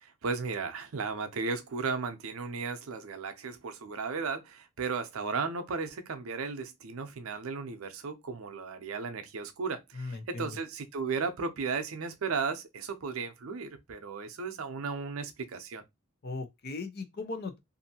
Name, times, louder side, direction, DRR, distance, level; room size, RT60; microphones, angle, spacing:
voice 1, 0.0-15.8, right 4 dB, 75° right, 0.5 m, -35 dB
voice 2, 9.9-10.6 16.2-17.6, left 3 dB, 50° left, 0.6 m, -38 dB
2.6 x 2.5 x 2.7 m
head